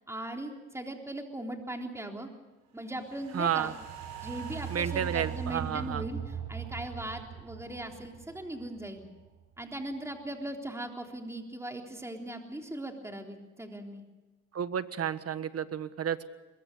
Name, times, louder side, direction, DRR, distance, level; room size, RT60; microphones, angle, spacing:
voice 1, 0.1-2.3 2.7-3.7 4.2-9.0 9.6-14.0, right 1 dB, 10° right, 2 dB, 3.6 m, -39 dB
sound 1, 3.0-9.4 9.7-9.8, right 9 dB, 90° right, 7.2 m, -40 dB
voice 2, 3.3-3.7 4.7-6.0 14.5-16.2, right 8 dB, 50° right, 12 dB, 1.5 m, -31 dB
22.5 x 22.0 x 6.8 m, 1.2 s
cardioid pair, 90°, 30 cm